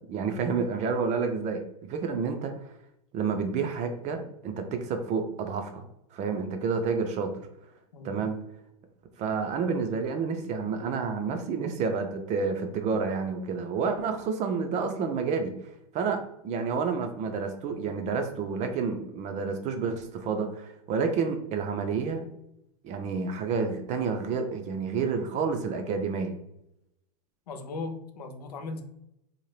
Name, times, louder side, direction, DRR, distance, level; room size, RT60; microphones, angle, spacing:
voice 1, 0.1-2.7 3.1-5.8 6.1-7.5 8.0-8.4 9.2-22.2 22.8-26.4, right 5 dB, 35° right, 6 dB, 0.4 m, -29 dB
voice 2, 7.9-8.3 27.5-28.8, left 3 dB, 80° left, 6 dB, 0.6 m, -37 dB
2.6 x 2.1 x 3.1 m, 0.82 s
hypercardioid pair, 100°, 20 cm